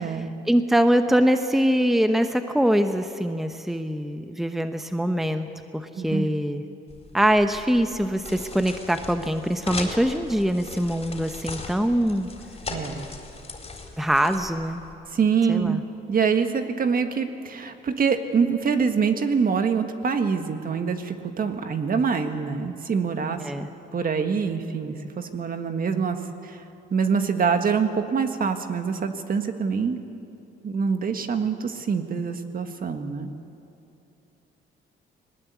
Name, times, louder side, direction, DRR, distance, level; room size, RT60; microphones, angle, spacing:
voice 1, 0.5-5.5 5.7-6.6 7.1-12.3 14.0-14.8 15.5-15.8 23.4-23.7, equal, ahead, 7 dB, 1.0 m, -23 dB
voice 2, 6.0-6.3 12.7-13.0 15.1-15.8 16.1-23.4 23.9-26.2 26.4-26.6 26.9-30.0 30.6-33.3, right 6 dB, 45° right, 7 dB, 1.7 m, -25 dB
sound 1, 6.9-14.9, left 3 dB, 30° left, 4.0 m, -38 dB
21.0 x 19.5 x 8.4 m, 2.7 s
cardioid pair, 90°, 20 cm